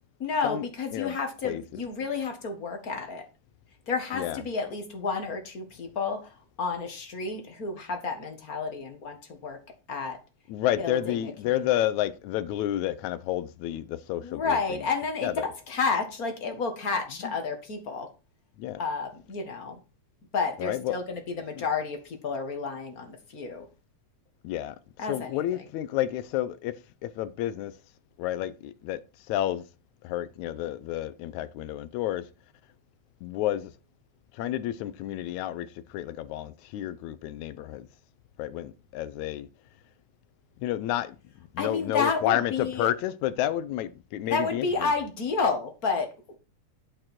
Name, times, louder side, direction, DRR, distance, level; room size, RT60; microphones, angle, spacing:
voice 1, 0.2-3.2 3.9-6.3 6.6-9.2 9.4-9.6 9.9-10.2 10.8-11.2 11.5-11.6 14.2-18.1 18.8-19.8 20.3-23.7 25.0-25.6 41.6-42.9 44.3-46.1, left 4 dB, 35° left, 1.7 m, -30 dB
voice 2, 1.4-1.8 4.1-4.4 10.5-14.8 15.2-15.5 17.2-17.3 18.6-18.8 20.6-21.0 21.6-21.7 24.4-24.8 25.0-27.7 28.2-29.0 29.3-29.6 30.0-32.2 33.2-33.7 34.3-37.9 38.4-39.5 40.6-41.2 41.5-44.9, left 13 dB, 80° left, 2.1 m, -30 dB
8.8 x 7.8 x 4.4 m
omnidirectional pair, 3.3 m